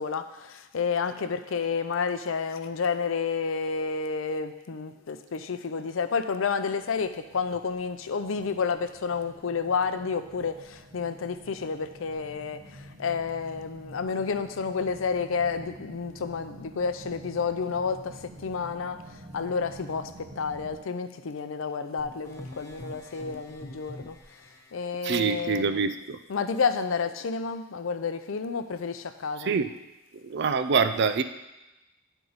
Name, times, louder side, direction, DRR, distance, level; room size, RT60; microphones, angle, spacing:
voice 1, 0.0-12.6 13.0-19.0 19.3-20.1 20.4-24.2 24.7-25.8 26.3-29.5, left 5 dB, 80° left, 9 dB, 0.5 m, -30 dB
sound 1, 6.8-20.8, right 1 dB, 80° right, 1.3 m, -48 dB
sound 2, 22.0-24.7, left 1 dB, 15° left, 0.7 m, -45 dB
voice 2, 25.0-26.2 29.4-29.7 30.1-31.2, right 5 dB, 60° right, 10 dB, 0.4 m, -25 dB
10.0 x 4.5 x 4.0 m, 1.0 s
head